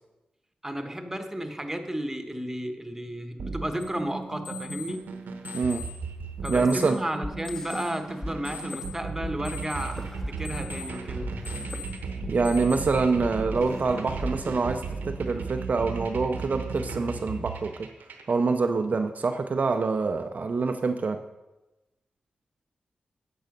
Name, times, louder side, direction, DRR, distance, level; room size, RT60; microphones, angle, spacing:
voice 1, 0.6-5.0 6.4-11.3, right 1 dB, 10° right, 6 dB, 1.3 m, -33 dB
sound 1, 3.4-18.3, right 4 dB, 85° right, 1.0 m, -36 dB
sound 2, 3.8-13.1, left 6 dB, 65° left, 2.0 m, -44 dB
voice 2, 5.5-5.9 6.5-7.0 12.3-17.9 18.3-21.2, right 4 dB, 55° right, 6 dB, 0.5 m, -26 dB
sound 3, 7.2-8.3 8.6-8.8 9.2-9.3 9.8-10.9 11.2-15.2, left 1 dB, 15° left, 0.9 m, -38 dB
9.0 x 6.3 x 5.2 m, 1.0 s
cardioid pair, 50°, 3 cm